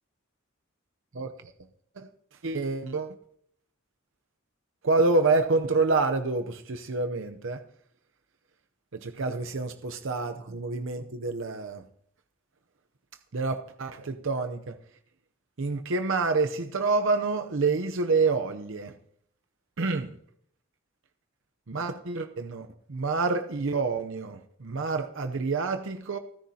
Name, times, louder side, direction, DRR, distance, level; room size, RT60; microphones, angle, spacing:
voice 1, 2.4-3.1 4.8-7.6 8.9-11.8 13.3-14.8 15.6-18.9 19.8-20.1 21.7-26.2, right 3 dB, 65° right, 0.7 m, -27 dB
29.0 x 10.0 x 2.8 m
head